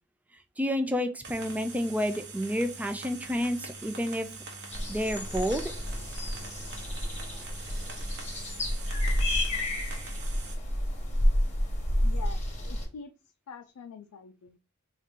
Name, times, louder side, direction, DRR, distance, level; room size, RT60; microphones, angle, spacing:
voice 1, 0.6-4.3 4.9-5.6, equal, 5° right, 8 dB, 0.3 m, -29 dB
sound 1, 1.2-10.6, right 3 dB, 50° right, 1.0 m, -44 dB
sound 2, 4.7-12.9, left 1 dB, 30° left, 1.0 m, -30 dB
voice 2, 12.0-13.1 13.5-14.6, left 5 dB, 85° left, 7 dB, 0.4 m, -45 dB
4.2 x 2.4 x 3.6 m, 0.30 s
head